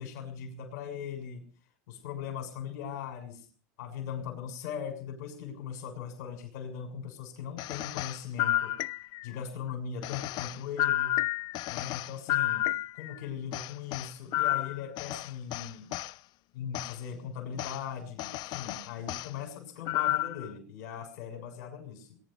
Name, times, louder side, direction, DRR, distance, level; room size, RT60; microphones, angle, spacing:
voice 1, 0.0-1.5 1.9-3.5 3.8-8.8 9.2-11.1 11.7-12.7 12.9-15.9 16.5-22.2, left 7 dB, 75° left, 5 dB, 6.8 m, -39 dB
sound 1, 7.6-9.3 10.0-13.2 13.5-16.1 16.7-16.9 17.6-17.8 18.2-19.3 19.9-20.5, left 15 dB, 50° left, 0.7 m, -31 dB
22.5 x 11.5 x 5.7 m, 0.42 s
supercardioid pair, 120°, 9 cm